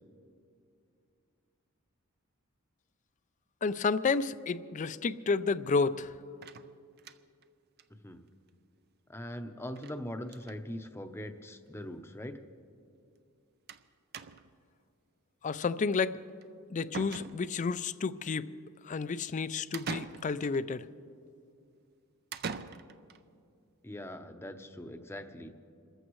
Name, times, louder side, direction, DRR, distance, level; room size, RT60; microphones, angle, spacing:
voice 1, 3.6-6.1 15.4-16.2 16.7-18.5 18.8-20.8, left 4 dB, 35° left, 15 dB, 0.4 m, -31 dB
sound 1, 6.4-7.4 7.8-7.9 8.2-8.3 8.5-8.6 9.8-10.0 10.2-10.6 11.5-11.6 11.8-11.9 13.7-13.9 14.1-14.6 16.4-16.5 16.9-17.7 19.7-20.6 22.3-23.2, right 5 dB, 45° right, 0.5 m, -42 dB
voice 2, 9.1-12.4 23.8-25.5, left 1 dB, 10° left, 6 dB, 0.7 m, -41 dB
28.0 x 14.5 x 3.1 m, 2.5 s
head